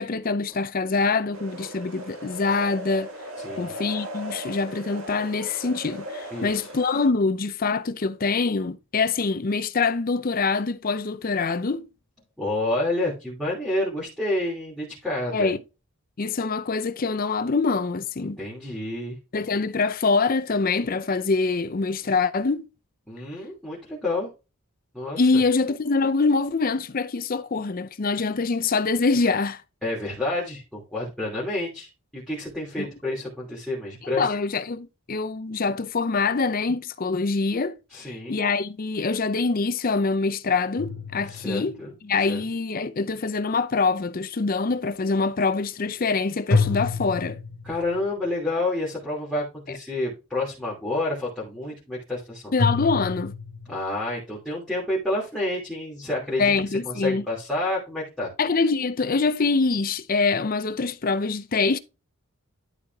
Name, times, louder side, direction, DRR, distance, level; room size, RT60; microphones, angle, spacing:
voice 1, 0.0-3.1 3.6-11.9 15.3-15.6 16.2-18.4 19.3-22.7 25.2-29.6 32.8-32.9 34.0-41.8 42.0-47.4 52.5-53.3 56.4-57.2 58.4-61.8, left 4 dB, 40° left, 0.5 m, -24 dB
sound 1, 1.3-7.1, equal, 70° right, 2.0 m, -38 dB
voice 2, 3.4-3.7 6.3-6.7 12.4-15.5 18.4-19.2 23.1-24.3 24.9-25.4 29.8-34.2 37.9-38.4 41.3-41.9 42.3-42.4 47.6-52.5 53.6-58.3, left 2 dB, 5° left, 2.9 m, -29 dB
sound 2, 40.8-41.9 46.5-48.1 52.6-53.7, left 4 dB, 65° left, 1.4 m, -27 dB
11.5 x 4.7 x 3.5 m
head